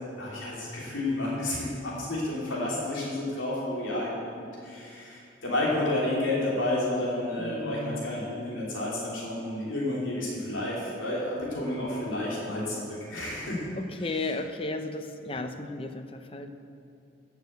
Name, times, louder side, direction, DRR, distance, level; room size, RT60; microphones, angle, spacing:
voice 1, 0.2-13.6 14.0-14.1, left 1 dB, 90° left, -5 dB, 3.2 m, -31 dB
voice 2, 7.4-8.1 13.8-16.5, left 2 dB, 30° left, 7 dB, 0.7 m, -34 dB
14.5 x 7.2 x 8.0 m, 2.6 s
head